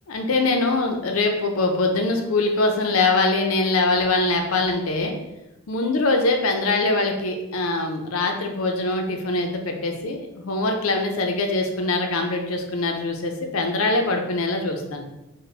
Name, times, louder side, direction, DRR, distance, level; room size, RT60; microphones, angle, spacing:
voice 1, 0.1-5.1 5.7-15.0, left 2 dB, 75° left, 3 dB, 0.6 m, -23 dB
4.1 x 2.2 x 3.2 m, 0.93 s
head